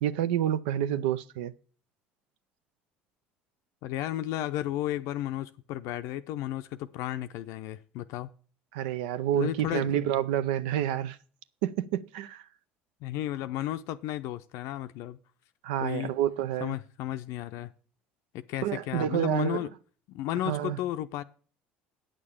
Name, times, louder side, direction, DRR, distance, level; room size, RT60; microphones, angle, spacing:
voice 1, 0.0-1.5 8.7-11.2 11.6-12.4 15.6-16.8 18.6-19.6 20.4-20.8, right 11 dB, 75° right, 0.5 m, -28 dB
voice 2, 3.8-8.3 9.3-9.9 13.0-15.2 15.8-16.1 16.6-17.7 18.3-19.7 20.1-21.2, left 13 dB, 65° left, 0.5 m, -33 dB
8.7 x 6.5 x 7.2 m
hypercardioid pair, 65°, 5 cm